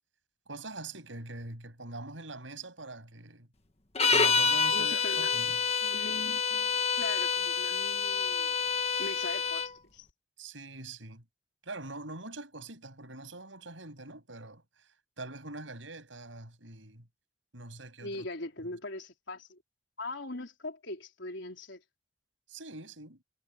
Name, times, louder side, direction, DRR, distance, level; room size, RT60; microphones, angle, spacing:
voice 1, 0.5-3.5 4.1-5.6 10.4-11.2 11.6-14.9 15.2-17.1 17.5-18.3 22.5-23.2, right 2 dB, 85° right, 7.6 m, -44 dB
sound 1, 4.0-9.7, left 5 dB, 35° left, 1.5 m, -28 dB
voice 2, 4.7-5.4 5.8-8.5 9.0-10.1 18.0-19.6 20.0-21.8, left 2 dB, 75° left, 3.9 m, -41 dB
head